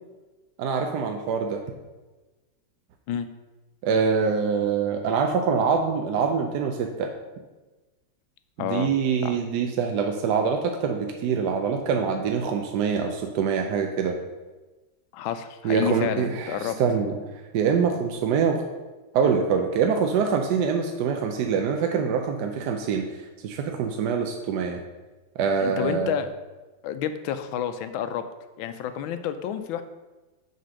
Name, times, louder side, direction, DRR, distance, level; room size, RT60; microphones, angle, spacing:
voice 1, 0.6-1.6 3.8-7.1 8.6-14.2 15.6-17.2 17.5-18.6 19.1-23.1 23.4-24.8 25.4-26.2, right 6 dB, 70° right, 4 dB, 1.1 m, -24 dB
voice 2, 8.6-8.9 9.2-9.4 15.1-16.8 25.6-26.3 26.8-28.2 28.6-29.8, left 9 dB, 85° left, 10 dB, 1.4 m, -29 dB
6.6 x 4.3 x 6.3 m, 1.2 s
omnidirectional pair, 2.1 m